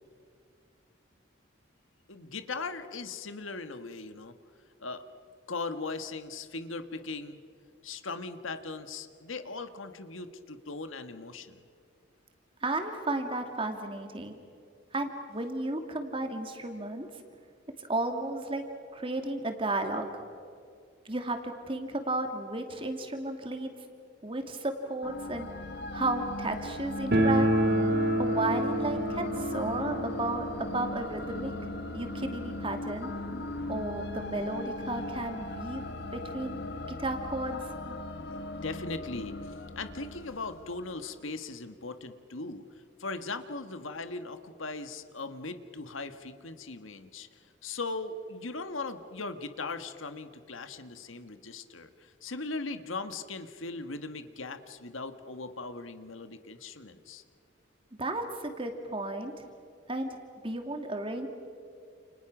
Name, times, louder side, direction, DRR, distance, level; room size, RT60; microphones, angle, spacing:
voice 1, 2.1-4.3 4.8-5.0 5.5-7.4 7.8-11.6 38.6-42.6 43.0-47.3 47.6-57.2, left 3 dB, 85° left, 9 dB, 1.6 m, -39 dB
voice 2, 12.6-14.4 14.9-17.1 17.8-18.6 18.9-20.1 21.0-23.7 24.2-25.5 25.9-27.5 28.2-31.5 31.9-33.1 33.7-36.6 36.9-37.6 58.0-59.4 59.9-60.1 60.4-61.3, right 2 dB, 25° right, 5 dB, 2.5 m, -33 dB
sound 1, 25.0-41.2, left 2 dB, 55° left, 1.3 m, -38 dB
sound 2, 27.1-33.8 34.1-34.2 34.4-34.5 35.3-35.4 35.7-36.9, right 1 dB, 50° right, 2.1 m, -30 dB
29.5 x 29.5 x 6.1 m, 2.4 s
head